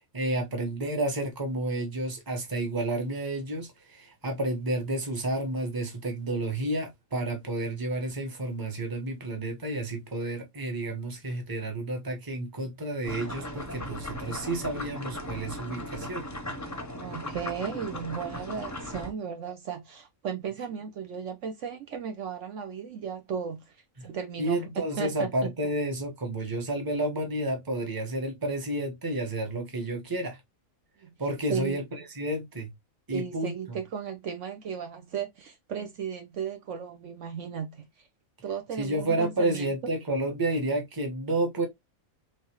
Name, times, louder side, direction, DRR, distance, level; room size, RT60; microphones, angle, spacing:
voice 1, 0.1-16.3 24.0-24.1 24.4-30.4 31.2-31.8 32.1-32.7 33.1-33.5 38.8-41.7, right 1 dB, 15° right, 0.9 m, -30 dB
sound 1, 13.0-19.1, left 1 dB, 20° left, 0.6 m, -38 dB
voice 2, 17.0-23.6 24.0-25.3 31.0-31.1 31.5-32.0 33.1-37.9 38.4-39.7, right 7 dB, 65° right, 1.0 m, -35 dB
3.5 x 3.2 x 2.9 m
omnidirectional pair, 1.5 m